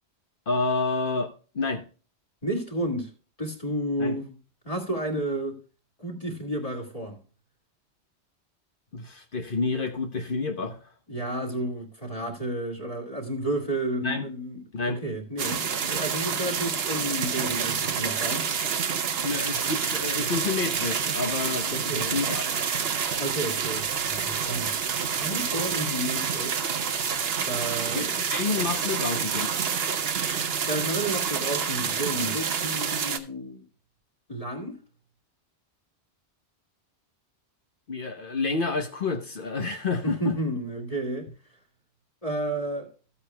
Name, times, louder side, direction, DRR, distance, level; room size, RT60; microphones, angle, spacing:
voice 1, 0.5-1.8 4.0-4.2 8.9-10.8 14.0-14.2 14.7-15.0 19.2-22.6 27.9-29.5 37.9-40.3, left 3 dB, 55° left, 1.1 m, -29 dB
voice 2, 2.4-3.1 3.4-4.3 4.6-5.6 6.0-7.2 11.1-14.6 15.0-18.5 21.7-22.2 23.2-24.7 25.1-26.6 27.4-28.1 30.7-33.6 34.3-34.8 40.0-41.3 42.2-42.9, right 1 dB, 30° left, 2.2 m, -31 dB
sound 1, 15.4-33.2, right 7 dB, 65° right, 1.1 m, -28 dB
14.0 x 8.4 x 2.3 m
omnidirectional pair, 1.1 m